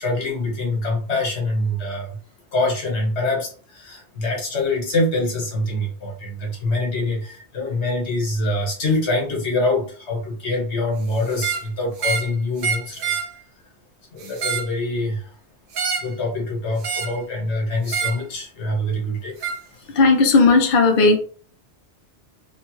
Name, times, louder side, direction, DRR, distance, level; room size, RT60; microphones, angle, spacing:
voice 1, 0.0-2.1 2.5-13.1 14.1-15.3 16.0-19.3 19.7-19.9, left 2 dB, 75° left, 1.5 m, -25 dB
sound 1, 11.3-11.7 12.0-12.3 12.6-13.3 14.2-14.7 15.7-16.1 16.8-17.2 17.9-18.2 19.4-19.6, right 6 dB, 60° right, 0.6 m, -26 dB
voice 2, 19.9-21.2, left 3 dB, 55° left, 0.6 m, -15 dB
3.5 x 2.1 x 3.0 m
omnidirectional pair, 1.2 m